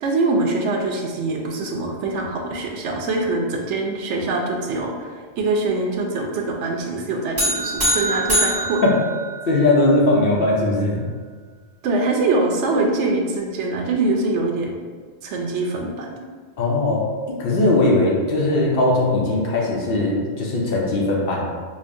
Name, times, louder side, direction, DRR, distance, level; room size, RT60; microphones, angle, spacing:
voice 1, 0.0-5.1 5.4-8.8 11.8-14.8 15.2-16.2, right 3 dB, 85° right, 1 dB, 0.9 m, -23 dB
sound 1, 7.4-9.8, equal, 30° right, 1.4 m, -23 dB
voice 2, 9.5-11.0 16.6-17.1 17.4-21.5, left 2 dB, 60° left, -2 dB, 0.8 m, -19 dB
5.1 x 2.1 x 2.6 m, 1.5 s
omnidirectional pair, 1.2 m